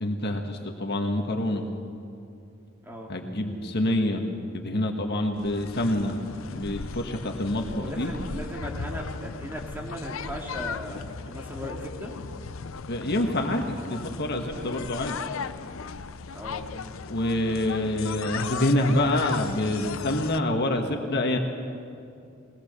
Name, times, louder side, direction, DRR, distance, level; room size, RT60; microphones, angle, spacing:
voice 1, 0.0-1.7 3.1-4.3 4.5-6.2 6.5-8.1 12.9-15.1 17.1-21.4, left 1 dB, 55° left, 4 dB, 1.6 m, -26 dB
sound 1, 5.3-20.4, left 5 dB, 70° left, 0.6 m, -37 dB
voice 2, 7.6-12.1 16.3-16.6, equal, 10° right, -1 dB, 2.6 m, -37 dB
21.5 x 18.5 x 6.8 m, 2.5 s
head